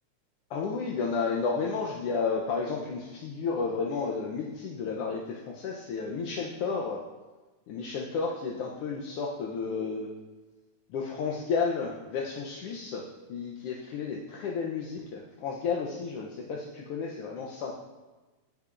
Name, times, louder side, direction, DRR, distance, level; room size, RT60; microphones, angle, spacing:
voice 1, 0.5-7.0 7.7-10.1 10.9-17.8, left 5 dB, 70° left, -2 dB, 1.5 m, -32 dB
18.0 x 6.7 x 2.5 m, 1.2 s
omnidirectional pair, 3.3 m